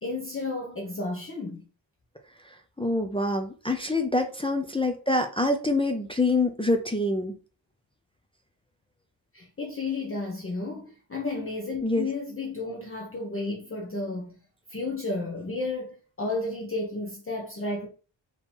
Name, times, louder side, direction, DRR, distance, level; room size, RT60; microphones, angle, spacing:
voice 1, 0.0-1.6 9.3-14.4 14.7-17.9, left 2 dB, 30° left, 0.8 m, -32 dB
voice 2, 2.8-7.4 11.8-12.1, left 2 dB, 15° left, 0.3 m, -25 dB
3.6 x 2.9 x 4.3 m
wide cardioid pair, 155°, 46 cm